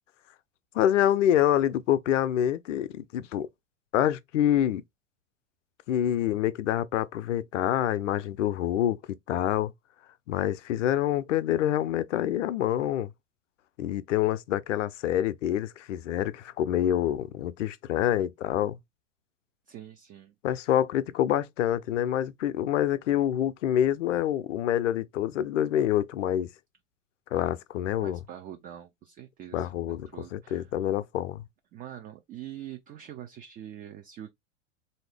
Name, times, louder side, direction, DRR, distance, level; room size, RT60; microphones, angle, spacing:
voice 1, 0.7-3.5 3.9-4.8 5.9-9.0 9.3-9.7 10.3-13.1 13.8-18.8 20.4-26.5 27.3-28.2 29.5-31.4, left 11 dB, 70° left, 0.6 m, -26 dB
voice 2, 19.7-20.6 28.0-30.7 31.7-34.3, right 11 dB, 20° right, 0.5 m, -44 dB
3.7 x 2.8 x 3.3 m
hypercardioid pair, 95°, 39 cm